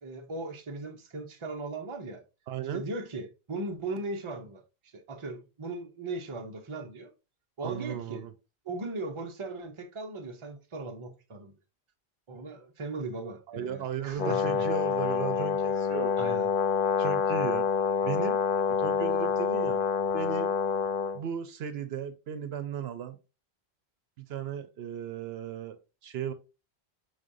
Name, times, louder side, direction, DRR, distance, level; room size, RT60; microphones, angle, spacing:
voice 1, 0.0-2.2 2.7-4.6 4.9-7.1 7.6-8.2 8.6-11.5 12.3-14.7 16.2-16.5, right 2 dB, 35° right, 0.7 m, -38 dB
voice 2, 2.5-2.8 7.6-8.3 13.5-16.3 17.0-17.7 18.0-18.4 18.7-19.9 20.1-20.5 21.1-23.2 24.2-25.8 26.0-26.3, right 8 dB, 75° right, 0.8 m, -36 dB
Brass instrument, 14.2-21.2, left 6 dB, 60° left, 0.7 m, -27 dB
5.0 x 4.0 x 2.6 m
omnidirectional pair, 1.1 m